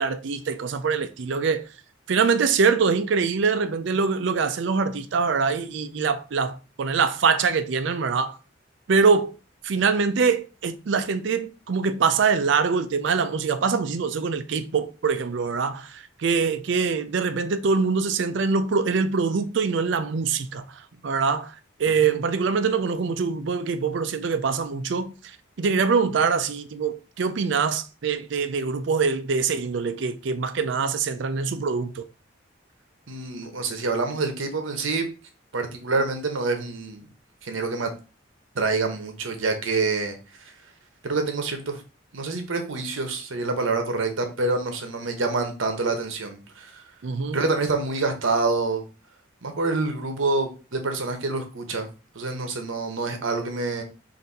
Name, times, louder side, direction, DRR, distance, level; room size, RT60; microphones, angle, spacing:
voice 1, 0.0-1.7 2.1-8.4 8.9-9.3 9.6-20.6 21.0-32.1 47.0-47.4, right 5 dB, 65° right, 0.4 m, -24 dB
voice 2, 21.9-22.2 33.1-35.1 35.5-37.0 37.4-37.9 38.5-40.2 41.0-41.8 42.1-46.8 47.3-48.8 49.4-51.9 52.1-53.8, right 3 dB, 85° right, 0.9 m, -27 dB
4.0 x 2.6 x 3.9 m
head